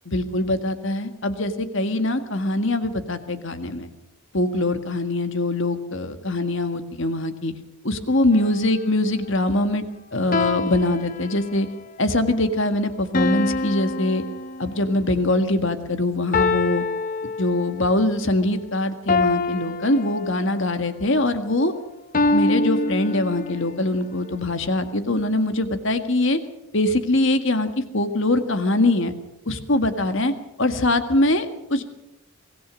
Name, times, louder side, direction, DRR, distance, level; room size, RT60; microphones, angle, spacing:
voice 1, 0.1-3.9 4.3-7.5 7.8-9.9 10.1-11.7 12.0-14.2 14.6-16.8 17.2-21.7 22.3-26.4 26.7-29.1 29.5-30.3 30.6-31.8, left 2 dB, 55° left, 9 dB, 1.8 m, -23 dB
sound 1, 8.3-8.8 10.3-11.8 13.1-15.0 16.3-17.9 19.1-20.7 22.1-23.7, left 2 dB, 40° left, 0.9 m, -25 dB
24.0 x 18.0 x 6.4 m, 0.86 s
head